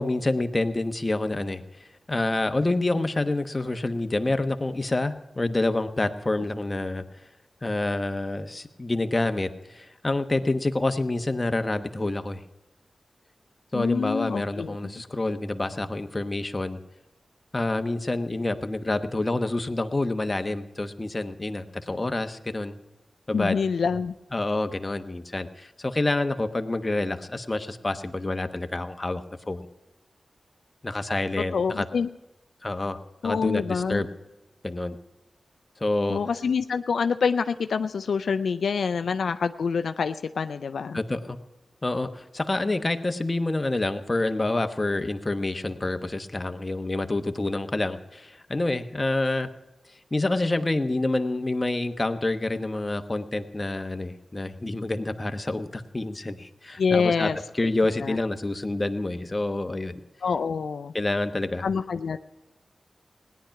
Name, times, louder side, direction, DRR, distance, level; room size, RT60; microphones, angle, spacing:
voice 1, 0.0-1.6 2.1-7.0 7.6-12.4 13.7-16.8 17.5-22.8 23.3-23.6 24.3-29.7 30.8-31.9 32.6-33.0 33.2-34.1 34.6-35.0 35.8-36.2 40.9-41.4 41.8-49.5 50.1-60.0 60.9-61.7, left 2 dB, 30° left, 8 dB, 1.1 m, -27 dB
voice 2, 13.7-14.8 23.3-24.1 31.5-32.1 33.2-34.0 36.1-41.0 56.8-57.4 58.0-58.2 60.2-60.9 61.6-62.2, left 5 dB, 85° left, 9 dB, 0.5 m, -26 dB
17.5 x 10.5 x 5.9 m, 1.0 s
cardioid pair, 50°, 0 cm